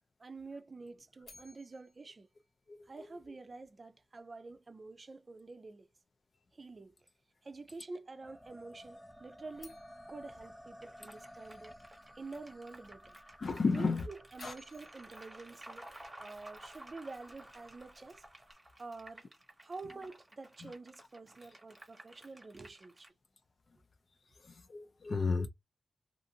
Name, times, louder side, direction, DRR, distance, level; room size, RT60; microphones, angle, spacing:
voice 1, 0.2-2.3 2.9-5.9 6.5-6.9 7.4-9.8 10.1-11.7 12.2-13.2 13.7-15.9 16.2-18.2 18.8-19.2 19.6-23.1, right 3 dB, 40° right, 0.4 m, -48 dB
sound 1, 1.2-3.4 9.5-11.7 14.1-16.5, left 3 dB, 70° left, 1.1 m, -61 dB
sound 2, 8.2-18.5, equal, 5° left, 0.6 m, -56 dB
sound 3, 10.8-23.1, right 1 dB, 20° right, 0.8 m, -55 dB
voice 2, 13.4-14.1 14.4-14.5 20.6-20.7 24.5-25.5, left 4 dB, 50° left, 0.4 m, -32 dB
2.5 x 2.5 x 2.7 m
wide cardioid pair, 125°, 0 cm